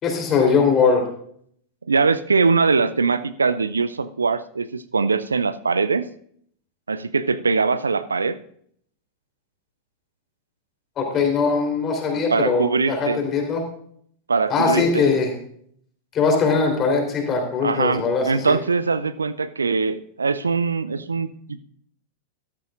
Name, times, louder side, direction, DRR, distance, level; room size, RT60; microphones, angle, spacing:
voice 1, 0.0-1.0 11.0-13.6 14.5-15.3 16.1-18.6, left 5 dB, 30° left, 2 dB, 3.6 m, -21 dB
voice 2, 1.9-6.1 6.9-8.4 12.3-13.2 14.3-15.1 17.6-21.6, right 4 dB, 75° right, 14 dB, 0.5 m, -22 dB
13.5 x 13.0 x 2.5 m, 0.63 s
figure-of-eight pair, 90°, 0 cm